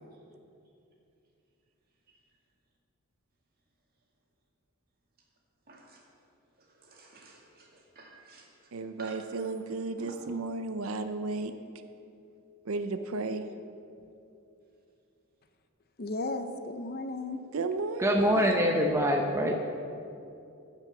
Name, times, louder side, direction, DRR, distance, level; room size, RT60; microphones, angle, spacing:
voice 1, 5.7-6.1 6.5-9.6 10.0-10.1, right 3 dB, 45° right, -1 dB, 2.3 m, -54 dB
voice 2, 8.7-11.5 12.7-13.5 17.5-18.6, right 3 dB, 80° right, 9 dB, 0.6 m, -33 dB
voice 3, 16.0-17.4, left 2 dB, 45° left, 8 dB, 0.7 m, -34 dB
voice 4, 18.0-19.5, equal, 15° right, 1 dB, 0.7 m, -24 dB
15.5 x 6.1 x 6.9 m, 2.7 s
head